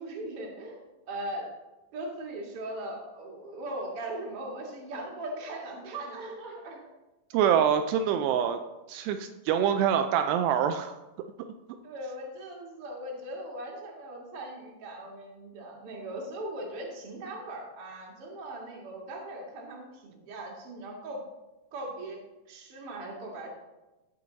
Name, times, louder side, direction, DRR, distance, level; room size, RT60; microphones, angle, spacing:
voice 1, 0.0-1.5 1.9-6.8 11.8-21.2 21.7-22.2 22.5-23.5, right 1 dB, 45° right, -2 dB, 2.3 m, -39 dB
voice 2, 7.3-8.6 8.9-11.0, right 8 dB, 85° right, 7 dB, 2.6 m, -25 dB
14.5 x 5.4 x 4.0 m, 1.0 s
omnidirectional pair, 4.9 m